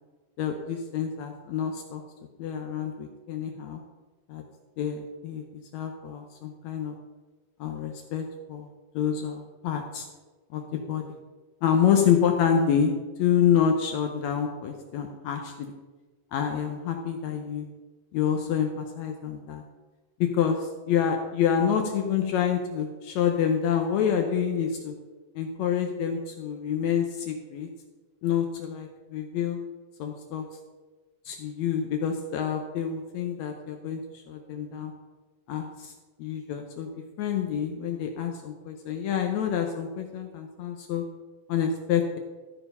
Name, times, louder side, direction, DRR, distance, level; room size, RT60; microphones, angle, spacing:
voice 1, 0.4-2.0 2.4-3.8 4.3-4.4 4.8-7.0 7.6-8.7 8.9-10.1 10.5-11.1 11.6-12.9 13.2-15.7 16.3-17.7 18.1-19.6 20.2-24.9 25.3-27.7 28.2-29.6 30.0-30.5 31.2-34.9 35.5-35.9 36.2-36.9 37.2-41.0 41.5-42.2, left 8 dB, 75° left, 4 dB, 1.7 m, -27 dB
13.5 x 4.5 x 5.5 m, 1.2 s
omnidirectional pair, 4.0 m